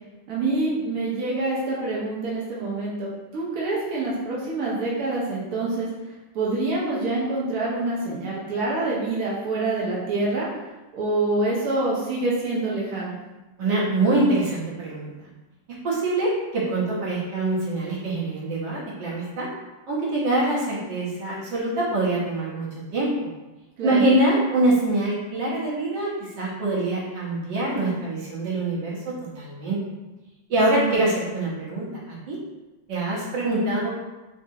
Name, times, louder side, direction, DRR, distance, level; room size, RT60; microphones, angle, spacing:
voice 1, 0.3-5.9 6.3-10.5 10.9-13.1 23.8-24.1 30.7-30.8, right 2 dB, 60° right, -6 dB, 1.2 m, -26 dB
voice 2, 13.6-15.1 15.8-19.5 19.9-22.7 22.9-23.3 23.8-29.8 30.5-32.4 32.9-33.9, right 2 dB, 75° right, -5 dB, 1.6 m, -24 dB
4.0 x 2.6 x 2.6 m, 1.1 s
omnidirectional pair, 2.0 m